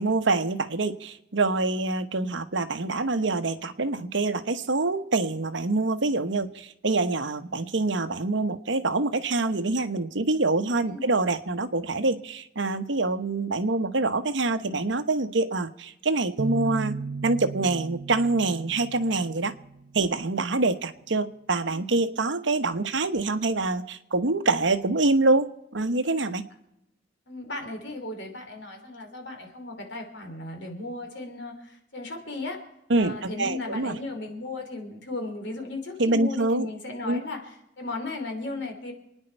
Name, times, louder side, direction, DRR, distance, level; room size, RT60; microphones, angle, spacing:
voice 1, 0.0-17.0 17.2-19.5 19.9-26.4 32.9-33.9 36.0-36.7 37.0-37.2, right 3 dB, 65° right, 10 dB, 1.0 m, -25 dB
sound 1, 16.4-20.1, right 4 dB, 85° right, 0.7 m, -35 dB
voice 2, 27.3-32.6 33.0-38.9, left 2 dB, 65° left, 4 dB, 3.2 m, -36 dB
27.5 x 9.9 x 4.5 m, 0.84 s
head